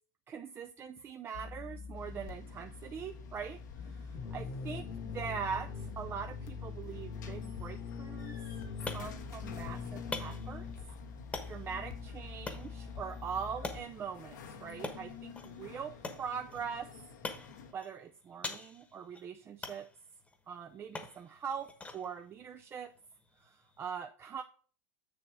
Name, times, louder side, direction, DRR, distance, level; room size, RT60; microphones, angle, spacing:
voice 1, 0.3-4.8 5.1-8.4 8.8-10.7 11.5-16.9 17.7-19.9 20.5-22.9 23.4-24.4, right 7 dB, 25° right, 6 dB, 0.4 m, -42 dB
sound 1, 1.3-13.8, left 5 dB, 60° left, 1.4 m, -43 dB
sound 2, 1.9-17.7, left 5 dB, 85° left, 1.4 m, -52 dB
sound 3, 8.3-23.9, left 3 dB, 15° left, 1.1 m, -47 dB
7.0 x 6.9 x 3.6 m, 0.43 s
supercardioid pair, 125°, 9 cm